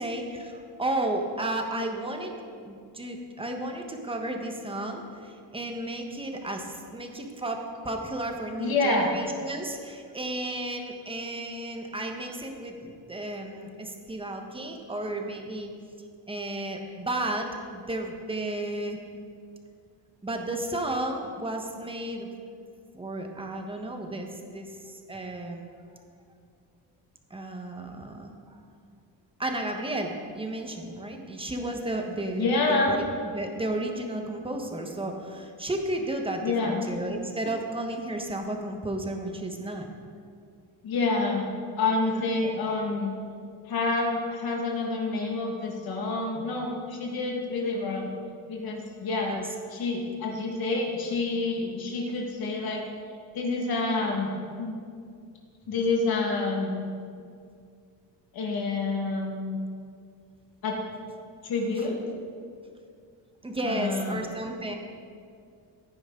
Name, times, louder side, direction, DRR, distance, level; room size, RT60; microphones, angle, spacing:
voice 1, 0.0-2.4 2.6-15.7 16.3-19.0 20.2-22.3 22.9-24.3 24.5-25.7 27.3-28.6 29.4-39.9 42.1-42.5 49.2-49.5 63.4-64.7, right 1 dB, 15° right, 3 dB, 1.3 m, -33 dB
voice 2, 8.6-9.1 32.4-32.9 36.4-36.8 40.8-41.5 41.8-43.1 43.7-48.1 48.5-49.3 49.7-52.9 53.3-54.3 54.6-54.8 55.7-56.9 58.3-59.6 60.6-60.8 61.4-62.0 63.6-64.2, left 3 dB, 65° left, 0 dB, 1.9 m, -28 dB
16.0 x 9.6 x 3.9 m, 2.3 s
cardioid pair, 135°, 40 cm